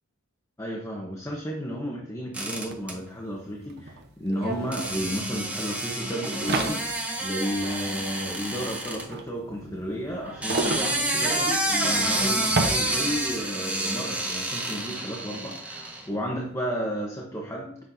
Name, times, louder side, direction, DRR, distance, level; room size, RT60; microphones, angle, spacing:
voice 1, 0.6-6.9 7.2-17.8, equal, 15° left, 0 dB, 0.8 m, -32 dB
sound 1, 2.3-2.9 4.7-9.0 10.2-16.1, right 1 dB, 5° right, 1.2 m, -29 dB
sound 2, 2.7-2.8 3.0-13.5, right 2 dB, 55° right, 0.8 m, -34 dB
7.7 x 5.8 x 2.6 m, 0.64 s
head